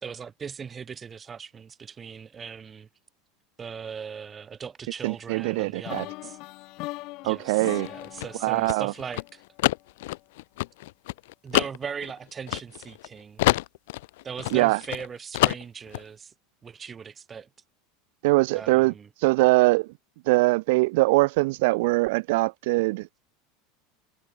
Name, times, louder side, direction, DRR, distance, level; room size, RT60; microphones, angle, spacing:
voice 1, 0.0-2.9 3.6-6.4 7.2-9.4 11.4-13.6 14.2-16.3 16.6-17.5 18.5-19.1, right 6 dB, 20° right, 3.3 m, -39 dB
voice 2, 5.0-6.0 7.2-7.9 8.4-8.9 14.5-14.8 18.2-18.9 19.2-19.9 20.3-23.1, right 23 dB, 70° right, 3.0 m, -22 dB
sound 1, 5.8-9.8, left 22 dB, 50° left, 5.8 m, -40 dB
sound 2, 7.8-13.1 13.4-15.1 15.3-16.0, left 19 dB, 75° left, 5.2 m, -27 dB
supercardioid pair, 150°, 0 cm